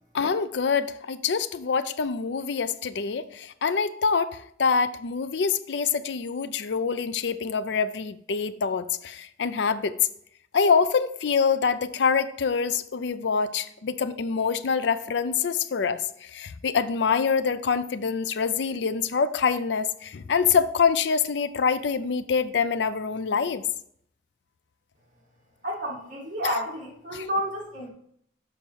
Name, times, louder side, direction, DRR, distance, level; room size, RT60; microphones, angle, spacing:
voice 1, 0.1-10.0 10.5-23.6 27.1-27.2, left 5 dB, 75° left, 13 dB, 0.5 m, -25 dB
voice 2, 25.6-27.9, equal, 45° right, -4 dB, 2.2 m, -30 dB
7.0 x 5.2 x 4.5 m, 0.68 s
head